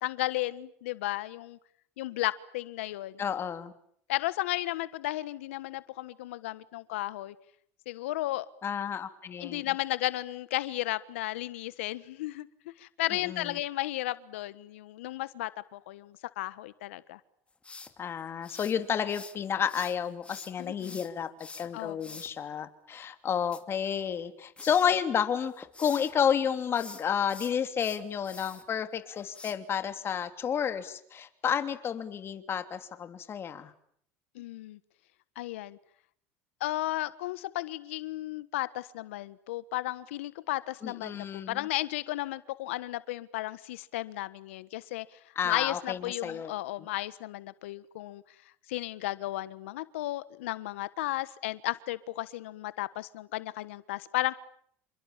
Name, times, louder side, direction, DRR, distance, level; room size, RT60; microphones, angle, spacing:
voice 1, 0.0-1.6 2.0-3.2 4.1-7.3 7.9-8.5 9.4-17.2 20.6-21.0 21.7-22.2 34.3-34.8 35.3-35.8 36.6-45.2 45.4-48.2 48.7-54.4, left 17 dB, 90° left, 16 dB, 1.3 m, -34 dB
voice 2, 3.2-3.7 8.6-9.6 13.2-13.5 18.0-21.3 21.6-33.7 40.8-41.7 45.4-46.5, left 8 dB, 35° left, 9 dB, 3.0 m, -31 dB
sound 1, 17.6-19.4 19.7-22.3 23.3-24.3 24.6-24.9 25.3-26.1 26.6-28.6 29.3-29.5, left 3 dB, 15° left, 2.8 m, -46 dB
28.5 x 27.0 x 7.4 m, 0.65 s
supercardioid pair, 100°, 7 cm